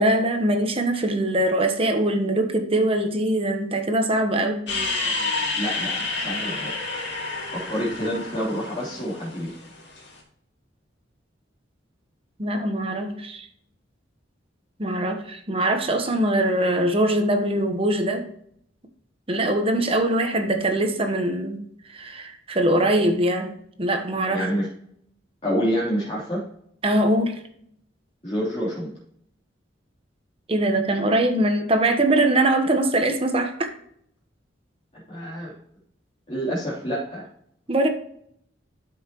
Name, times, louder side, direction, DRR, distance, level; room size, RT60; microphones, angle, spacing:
voice 1, 0.0-4.7 12.4-13.5 14.8-18.3 19.3-21.6 21.9-24.5 26.8-27.4 30.5-33.7 37.7-37.9, right 1 dB, 30° right, 5 dB, 1.1 m, -22 dB
sound 1, 4.7-10.1, left 3 dB, 65° left, 2.7 m, -29 dB
voice 2, 5.6-6.7 7.5-9.5 24.3-24.7 25.4-26.4 28.2-28.9 35.1-35.5 36.3-37.3, equal, 30° left, -8 dB, 3.2 m, -27 dB
13.0 x 5.7 x 3.0 m, 0.67 s
head